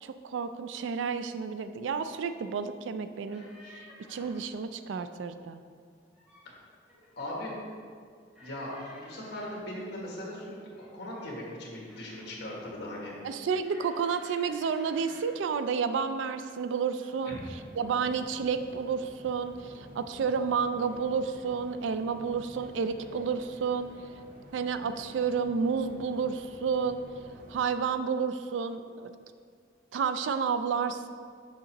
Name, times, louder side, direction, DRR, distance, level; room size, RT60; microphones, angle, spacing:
voice 1, 0.0-5.6 13.2-17.4 17.8-23.9 24.5-27.0 27.5-29.1 29.9-31.1, right 6 dB, 80° right, 10 dB, 0.3 m, -31 dB
sound 1, 3.3-4.5 5.9-6.5 6.9-7.4 8.3-9.7 10.7-12.4 13.6-15.5 16.3-16.6 17.0-17.2, left 1 dB, 5° right, 1.1 m, -54 dB
voice 2, 7.2-7.5 8.3-13.1 17.2-17.4, left 1 dB, 60° left, -3 dB, 1.6 m, -39 dB
sound 2, 17.3-27.7, equal, 50° right, 0.7 m, -51 dB
6.4 x 6.0 x 2.9 m, 2.1 s
head